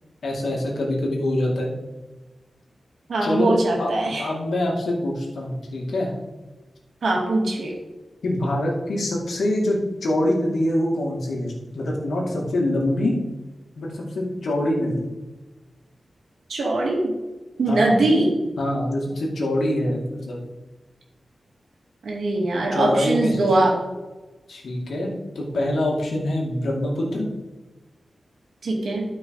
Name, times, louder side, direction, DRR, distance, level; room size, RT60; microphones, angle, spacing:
voice 1, 0.2-1.7 3.2-3.9 4.2-6.1 8.2-13.2 13.8-15.1 17.7-18.1 18.6-20.4 22.7-23.4 24.5-27.3, left 1 dB, 80° left, -2 dB, 2.4 m, -24 dB
voice 2, 3.1-4.2 7.0-7.7 16.5-17.0 17.6-18.3 22.0-23.7 28.6-29.1, right 2 dB, 80° right, -1 dB, 2.4 m, -21 dB
12.0 x 5.4 x 4.8 m, 1.2 s
wide cardioid pair, 160°, 0 cm